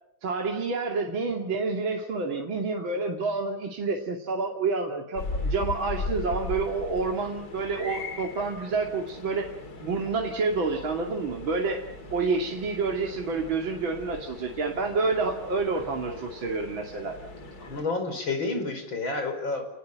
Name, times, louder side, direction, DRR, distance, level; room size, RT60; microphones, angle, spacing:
voice 1, 0.2-9.5 9.8-11.8 12.1-17.2, right 4 dB, 60° right, 1 dB, 3.2 m, -28 dB
sound 1, 5.1-17.8, left 2 dB, 45° left, 3.2 m, -38 dB
voice 2, 17.6-19.7, left 3 dB, 60° left, 6 dB, 6.0 m, -30 dB
29.5 x 20.0 x 8.8 m, 0.72 s
omnidirectional pair, 2.4 m